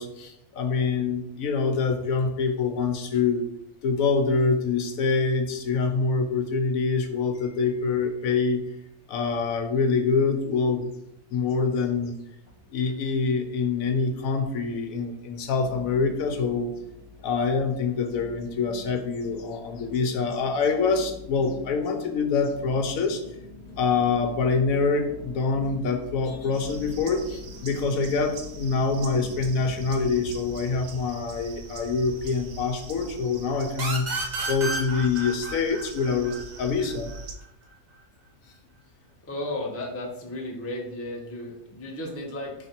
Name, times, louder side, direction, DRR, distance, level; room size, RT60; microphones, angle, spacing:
voice 1, 0.0-3.5 3.8-8.6 9.1-10.9 11.3-12.1 12.7-16.7 17.2-23.2 23.8-37.1, left 4 dB, 70° left, 6 dB, 0.9 m, -25 dB
sound 1, 12.4-13.3 13.6-14.2 14.7-14.8 15.6-30.7, left 2 dB, 60° right, 2.0 m, -45 dB
sound 2, 26.5-37.4, right 3 dB, 80° right, 1.1 m, -42 dB
sound 3, 33.8-37.2, right 3 dB, 40° right, 0.7 m, -32 dB
voice 2, 39.3-42.5, left 1 dB, 15° left, -1 dB, 0.5 m, -34 dB
4.0 x 3.1 x 4.3 m, 0.78 s
omnidirectional pair, 1.6 m